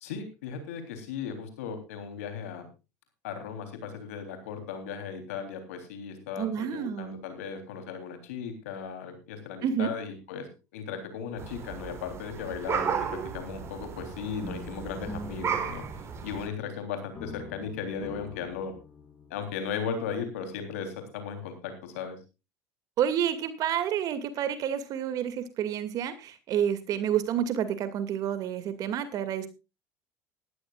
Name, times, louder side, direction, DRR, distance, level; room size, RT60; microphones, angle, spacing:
voice 1, 0.0-2.7 3.2-10.5 10.7-13.1 13.3-15.8 16.2-18.7 19.3-22.2, left 6 dB, 90° left, 7 dB, 3.5 m, -36 dB
voice 2, 6.4-7.2 9.6-9.9 23.0-29.5, right 9 dB, 55° right, 10 dB, 2.3 m, -29 dB
sound 1, 11.4-16.5, right 6 dB, 40° right, 3.6 m, -34 dB
sound 2, 14.4-16.8 17.1-19.4, left 2 dB, 30° left, 4.8 m, -44 dB
18.0 x 13.0 x 2.4 m, 0.28 s
supercardioid pair, 95°, 7 cm